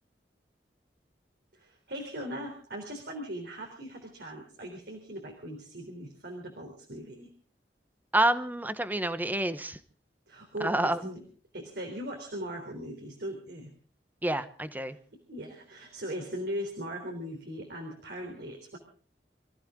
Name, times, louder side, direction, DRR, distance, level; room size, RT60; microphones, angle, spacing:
voice 1, 1.5-7.3 10.3-11.2 11.5-13.7 15.1-18.8, equal, 65° right, 2 dB, 3.7 m, -39 dB
voice 2, 8.1-9.8 10.6-11.0 14.2-15.0, right 1 dB, 10° right, 12 dB, 1.1 m, -28 dB
26.0 x 15.0 x 3.8 m, 0.40 s
head